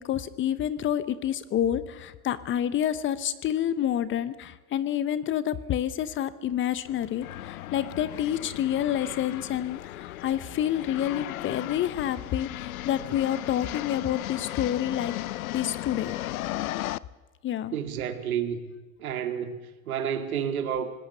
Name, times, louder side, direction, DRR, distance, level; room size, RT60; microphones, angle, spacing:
voice 1, 0.0-15.1 15.5-16.2 17.4-17.7, left 10 dB, 25° left, 15 dB, 1.0 m, -28 dB
sound 1, 6.8-17.0, left 15 dB, 75° left, 0.8 m, -36 dB
voice 2, 17.7-20.9, right 8 dB, 75° right, 7 dB, 2.5 m, -31 dB
25.5 x 19.0 x 6.9 m, 1.2 s
hypercardioid pair, 115°, 43 cm